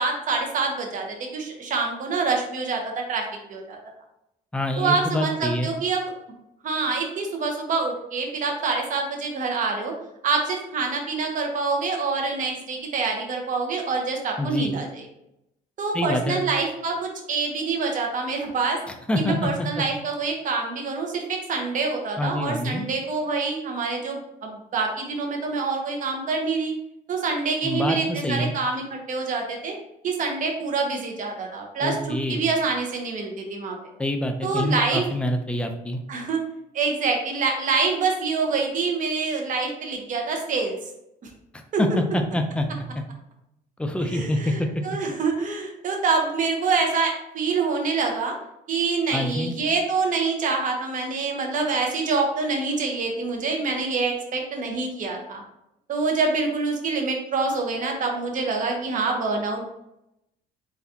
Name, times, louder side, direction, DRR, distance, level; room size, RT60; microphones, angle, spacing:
voice 1, 0.0-3.8 4.8-6.1 6.6-9.9 10.2-15.0 15.8-18.8 19.2-26.7 27.1-29.7 30.0-31.9 32.3-33.7 34.4-35.0 36.1-36.4 36.7-40.8 41.7-41.8 44.1-48.3 48.7-55.4 55.9-59.7, right 4 dB, 50° right, 2 dB, 1.2 m, -26 dB
voice 2, 4.5-5.7 14.4-14.7 15.9-16.4 19.1-19.8 22.2-22.8 27.6-28.5 31.8-32.4 34.0-36.0 41.5-42.7 42.9-43.0 43.8-44.7 49.1-49.5, left 1 dB, 5° left, 5 dB, 0.5 m, -26 dB
4.0 x 4.0 x 2.8 m, 0.84 s
cardioid pair, 110°, 17 cm